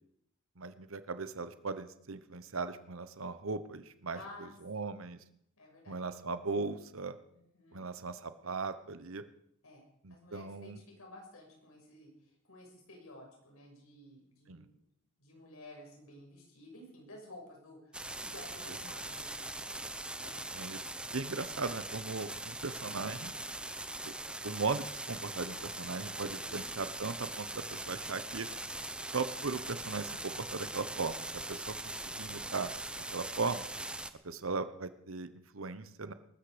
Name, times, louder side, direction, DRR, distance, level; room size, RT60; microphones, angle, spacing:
voice 1, 0.6-4.2 4.6-5.2 5.9-7.2 7.7-9.2 10.0-10.8 14.5-14.7 20.5-20.8 21.1-23.3 24.4-28.5 29.1-32.7 33.1-33.7 34.2-36.1, right 4 dB, 70° right, 12 dB, 1.0 m, -38 dB
voice 2, 4.1-4.9 5.6-6.0 7.3-7.9 9.6-9.8 10.1-14.9 15.2-19.8 20.2-20.4 26.2-26.6, left 1 dB, 85° left, 1 dB, 6.4 m, -53 dB
sound 1, 17.9-34.1, right 2 dB, 5° right, 0.7 m, -41 dB
21.0 x 13.0 x 5.1 m, 0.71 s
head